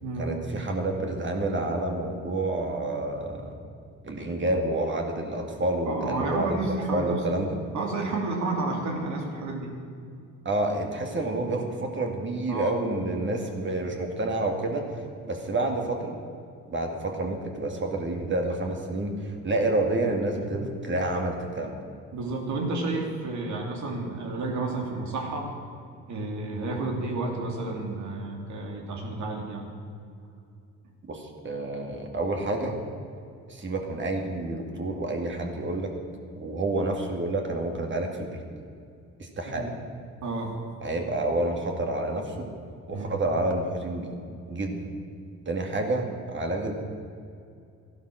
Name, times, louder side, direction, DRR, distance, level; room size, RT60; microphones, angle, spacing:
voice 1, 0.2-3.6 4.0-7.6 10.4-14.9 15.2-16.2 16.7-21.8 31.1-32.8 33.5-35.9 36.4-38.4 39.2-39.7 40.8-42.5 42.9-44.1 44.5-44.9 45.5-46.8, right 2 dB, 40° right, 2 dB, 2.4 m, -29 dB
voice 2, 5.9-7.2 7.7-9.7 12.5-12.8 20.5-20.7 22.1-25.5 26.1-29.7 39.4-39.7 40.2-40.6 42.9-43.2, right 2 dB, 70° right, 1 dB, 2.9 m, -31 dB
14.0 x 11.5 x 6.5 m, 2.5 s
cardioid pair, 90°, 30 cm